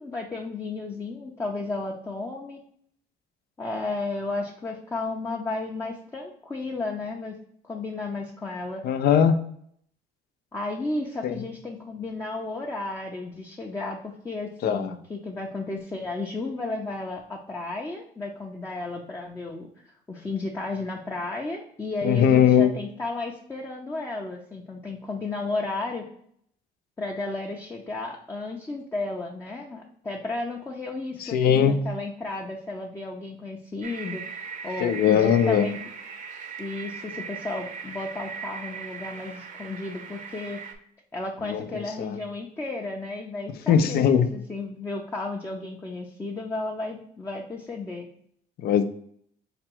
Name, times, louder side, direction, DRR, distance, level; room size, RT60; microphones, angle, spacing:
voice 1, 0.0-2.6 3.6-7.4 7.6-8.8 10.5-26.0 27.0-35.8 36.6-40.6 41.1-48.1, left 3 dB, 15° left, -1 dB, 0.6 m, -33 dB
voice 2, 8.8-9.4 11.2-11.3 14.6-14.9 22.0-22.7 31.2-31.8 34.8-35.7 41.5-42.2 43.7-44.3 48.6-48.8, left 8 dB, 65° left, 9 dB, 0.6 m, -20 dB
sound 1, 33.8-40.7, right 6 dB, 50° right, 0.8 m, -39 dB
5.0 x 2.3 x 4.4 m, 0.66 s
cardioid pair, 110°, 17 cm